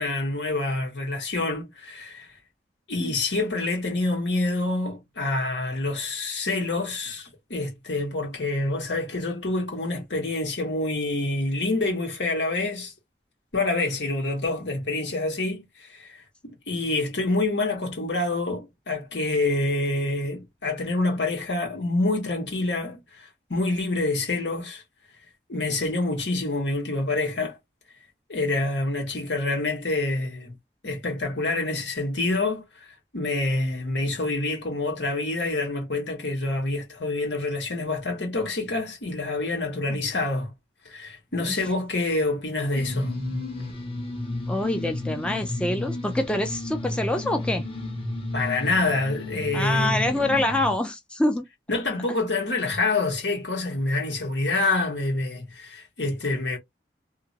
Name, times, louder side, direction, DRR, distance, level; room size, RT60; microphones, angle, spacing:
voice 1, 0.0-2.3 2.9-12.9 13.5-24.8 25.5-27.6 28.3-30.6 30.8-40.5 40.8-43.2 48.3-50.4 51.7-56.6, left 2 dB, 85° left, 1.4 m, -27 dB
voice 2, 39.9-40.2 44.5-47.7 49.5-51.5, left 1 dB, 5° left, 0.3 m, -26 dB
sound 1, 42.7-50.8, left 1 dB, 30° left, 0.9 m, -32 dB
2.8 x 2.5 x 2.6 m
head